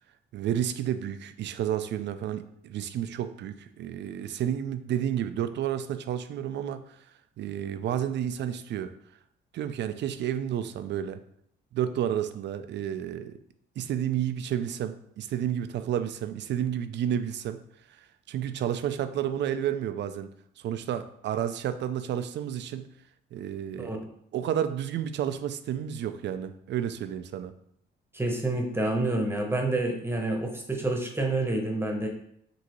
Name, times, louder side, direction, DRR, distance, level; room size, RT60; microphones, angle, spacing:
voice 1, 0.3-7.0 7.4-8.9 9.5-11.2 11.7-13.4 13.8-17.6 18.3-20.3 20.6-22.9 23.3-24.0 24.3-27.5, right 10 dB, 65° right, 11 dB, 0.4 m, -31 dB
voice 2, 28.1-32.1, right 2 dB, 10° right, 2 dB, 0.9 m, -28 dB
5.1 x 2.8 x 3.0 m, 0.72 s
cardioid pair, 90°, 20 cm